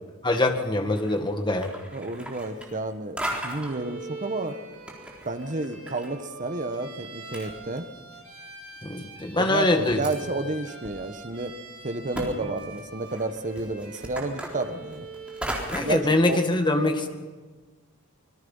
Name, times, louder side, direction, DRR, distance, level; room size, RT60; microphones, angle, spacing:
voice 1, 0.2-1.7 8.8-10.0 15.7-17.1, left 2 dB, 20° left, 5 dB, 1.9 m, -23 dB
sound 1, 0.8-1.2 1.5-2.9 3.2-3.8 4.5-6.1 6.3-6.4 7.0-7.1 7.3-8.1 8.7-8.8 9.5-10.2 10.8-10.9 11.3-11.4 12.1-12.3 12.6-16.0, right 1 dB, 5° right, 4.1 m, -36 dB
voice 2, 1.9-4.6 5.2-7.9 9.4-11.5 11.8-15.1 15.8-16.4, right 2 dB, 35° right, 9 dB, 1.3 m, -31 dB
Bowed string instrument, 3.6-15.7, right 3 dB, 85° right, 5.3 m, -44 dB
26.0 x 21.5 x 5.6 m, 1.4 s
head